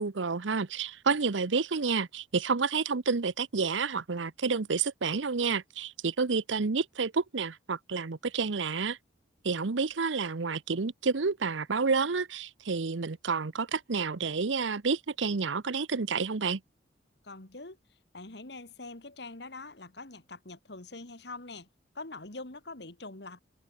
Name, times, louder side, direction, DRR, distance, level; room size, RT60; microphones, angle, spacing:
voice 1, 0.0-9.0 9.4-16.6, right 4 dB, 85° right, 0.8 m, -29 dB
voice 2, 17.2-21.7 21.9-23.4, left 3 dB, 65° left, 2.2 m, -44 dB
head